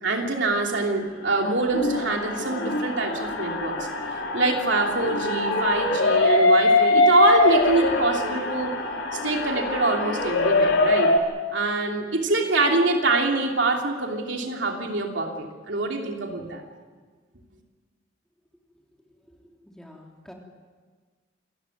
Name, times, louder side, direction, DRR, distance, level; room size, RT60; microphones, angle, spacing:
voice 1, 0.0-3.9 4.3-8.7 9.1-11.1 11.5-16.6, right 2 dB, 70° right, 2 dB, 3.0 m, -24 dB
sound 1, 1.3-11.2, left 2 dB, 75° left, 3.5 m, -23 dB
voice 2, 19.3-20.3, left 1 dB, 5° left, 0 dB, 3.2 m, -48 dB
28.0 x 14.0 x 9.3 m, 1.5 s
head